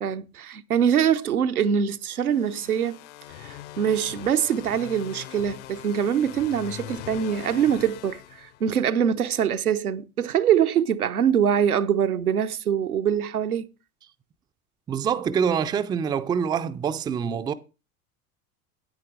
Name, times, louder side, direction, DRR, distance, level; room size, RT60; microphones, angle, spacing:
voice 1, 0.0-3.0 3.4-13.7, right 8 dB, 80° right, 0.7 m, -24 dB
sound 1, 2.1-9.0, left 13 dB, 50° left, 0.8 m, -42 dB
voice 2, 14.9-17.5, right 7 dB, 10° right, 0.4 m, -25 dB
9.9 x 9.0 x 3.4 m
figure-of-eight pair, 75°, 43 cm